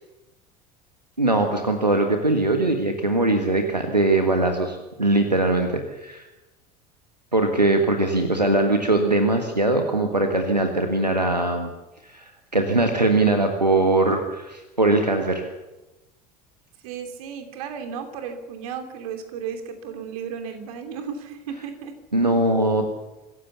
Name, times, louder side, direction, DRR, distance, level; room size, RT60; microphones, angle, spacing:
voice 1, 1.2-6.3 7.3-11.7 12.0-15.4 22.1-22.8, right 2 dB, 90° right, 5 dB, 1.6 m, -21 dB
voice 2, 16.8-21.9, right 7 dB, 60° right, 6 dB, 3.1 m, -34 dB
25.5 x 16.0 x 7.1 m, 1.1 s
figure-of-eight pair, 70°, 21 cm